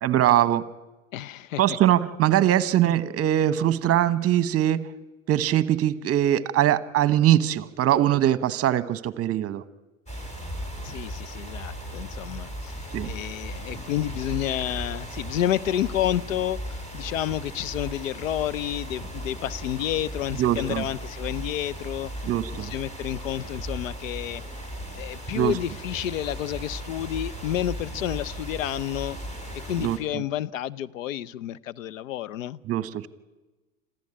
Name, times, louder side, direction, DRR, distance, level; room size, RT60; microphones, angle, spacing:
voice 1, 0.0-0.7 1.6-4.9 5.3-9.6 12.9-13.1 20.4-20.8 22.2-22.7 25.3-25.6 29.8-30.2 32.7-33.1, right 12 dB, 35° right, 1.1 m, -22 dB
voice 2, 1.1-1.8 10.8-22.3 22.5-24.4 25.0-29.2 29.6-32.6, left 12 dB, 75° left, 0.8 m, -30 dB
sound 1, 10.1-30.0, equal, 15° left, 5.4 m, -37 dB
26.5 x 14.5 x 8.8 m
hypercardioid pair, 85°, 40 cm